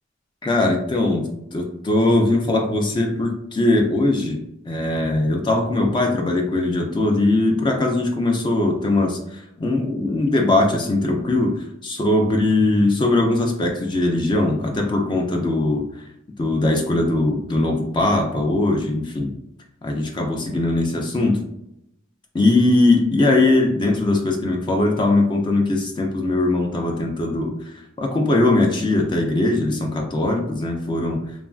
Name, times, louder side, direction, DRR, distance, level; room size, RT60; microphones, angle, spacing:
voice 1, 0.4-1.2 1.5-16.0 16.4-19.3 19.8-21.4 22.3-31.3, left 2 dB, 25° left, 1 dB, 0.3 m, -20 dB
3.0 x 2.4 x 2.3 m, 0.82 s
head